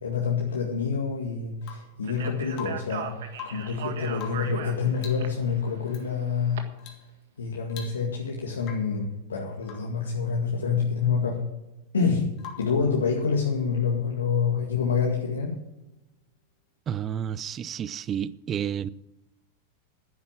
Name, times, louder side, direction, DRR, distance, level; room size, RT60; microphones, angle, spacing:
voice 1, 0.0-6.7 7.4-11.4 11.9-15.6, left 5 dB, 80° left, 2.0 m, -27 dB
Rain / Water tap faucet / Drip, 1.6-2.0 2.5-3.0 3.3-3.8 4.1-4.6 5.0-5.3 5.9-6.1 6.8-7.1 7.4-7.5 7.7-8.3 8.6-9.0 9.6-10.0 12.4-12.8 14.7-14.8, left 8 dB, 45° left, 2.7 m, -44 dB
Speech, 2.0-6.6, right 8 dB, 65° right, 1.6 m, -39 dB
voice 2, 16.9-18.9, right 9 dB, 30° right, 0.5 m, -30 dB
10.5 x 9.6 x 7.6 m
hypercardioid pair, 95°, 0 cm